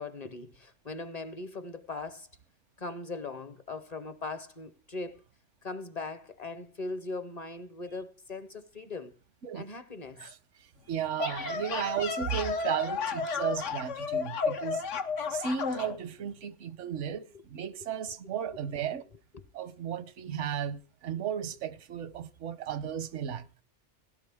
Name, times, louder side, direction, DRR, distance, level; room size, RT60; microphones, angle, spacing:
voice 1, 0.0-2.3 2.8-5.2 5.6-9.1 9.5-10.2 18.8-18.9 19.3-19.4, left 3 dB, 40° left, 0.7 m, -40 dB
voice 2, 10.9-14.8 15.3-19.0 19.5-23.5, right 8 dB, 85° right, 1.1 m, -34 dB
sound 1, 11.0-16.0, left 5 dB, 85° left, 1.4 m, -32 dB
17.0 x 11.5 x 3.5 m
omnidirectional pair, 1.2 m